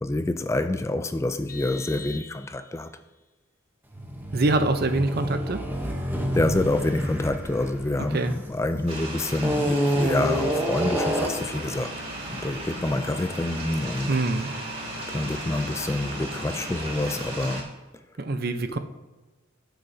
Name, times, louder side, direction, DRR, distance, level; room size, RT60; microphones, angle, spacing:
voice 1, 0.0-2.9 6.3-12.0 12.3-14.2 15.1-17.7, left 2 dB, 15° left, 0.3 m, -27 dB
Vehicle horn car horn honking, 1.5-2.9, left 4 dB, 45° left, 0.9 m, -42 dB
sound 1, 3.9-8.8 9.4-11.6, equal, 10° right, 0.8 m, -28 dB
voice 2, 4.3-5.6 8.1-8.4 14.1-14.5 18.2-18.8, right 2 dB, 50° right, 0.7 m, -24 dB
sound 2, 8.9-17.6, right 1 dB, 30° right, 2.2 m, -35 dB
18.0 x 6.6 x 2.7 m
head